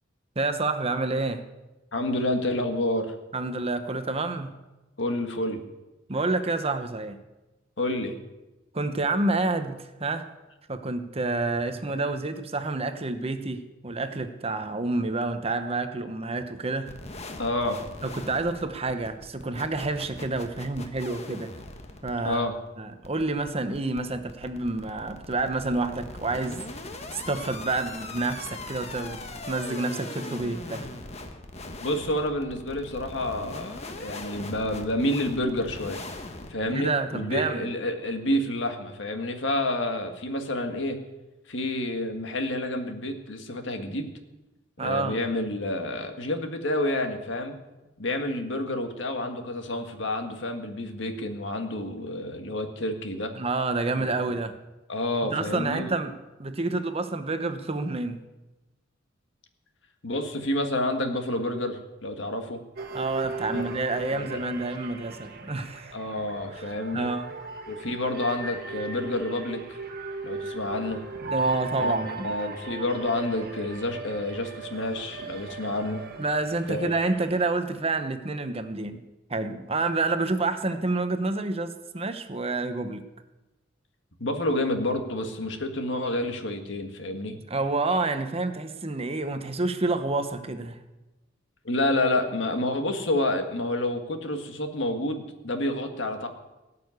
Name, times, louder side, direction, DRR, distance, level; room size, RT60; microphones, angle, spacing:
voice 1, 0.4-1.4 3.3-4.5 6.1-7.2 8.7-10.3 10.7-16.9 18.0-21.5 22.0-22.4 22.8-26.6 27.1-30.9 36.6-37.7 44.8-45.2 53.3-54.5 55.2-56.1 56.4-58.2 62.9-65.9 66.9-67.3 71.3-72.3 76.2-79.0 79.3-83.0 87.5-90.8, right 3 dB, 30° right, 8 dB, 0.9 m, -28 dB
voice 2, 1.9-3.1 5.0-5.6 7.8-8.2 17.4-17.8 22.2-22.5 31.8-36.0 36.5-41.0 41.5-44.1 44.8-47.6 48.0-53.3 53.9-54.1 54.9-55.9 60.0-62.6 63.5-63.7 64.1-64.4 65.9-67.1 67.7-69.8 70.2-71.0 71.8-71.9 72.2-76.0 76.7-76.9 84.2-87.4 91.7-96.3, left 1 dB, 65° left, 5 dB, 1.8 m, -29 dB
sound 1, 16.9-36.5, left 2 dB, 35° left, 1.3 m, -41 dB
sound 2, 62.8-77.5, right 3 dB, 50° right, 1.8 m, -36 dB
18.5 x 6.8 x 9.6 m, 1.1 s
head